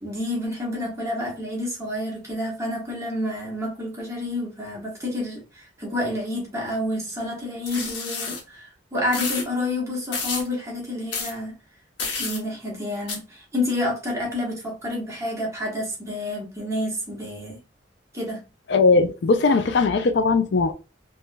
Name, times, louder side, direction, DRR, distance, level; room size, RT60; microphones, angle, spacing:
voice 1, 0.0-11.6 12.2-17.6 18.1-18.4, left 1 dB, 15° right, 1.1 m, -29 dB
sound 1, 7.7-8.4 9.1-9.5 10.1-10.5 11.1-11.3 12.0-12.4 13.1-13.2, left 4 dB, 80° left, 1.0 m, -29 dB
voice 2, 18.7-20.7, left 4 dB, 65° left, 0.4 m, -19 dB
3.2 x 3.1 x 2.2 m
head